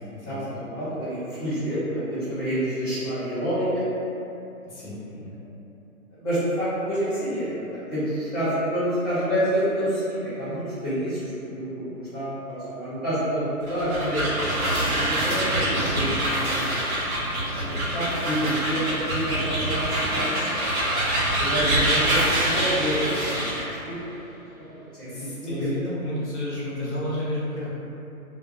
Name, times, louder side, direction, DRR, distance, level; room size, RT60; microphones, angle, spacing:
voice 1, 0.1-0.6 4.6-5.3 16.0-16.1 16.5-16.6 25.0-27.7, left 1 dB, 50° left, -9 dB, 0.8 m, -32 dB
voice 2, 0.6-3.8 6.2-14.6 14.9-17.0 17.6-20.5 20.9-21.0 21.4-24.2 24.9-25.7, equal, 15° right, -21 dB, 0.7 m, -28 dB
sound 1, 13.6-23.7, right 1 dB, 70° right, 0.9 m, -25 dB
2.2 x 2.1 x 2.9 m, 2.8 s
hypercardioid pair, 180°, 44 cm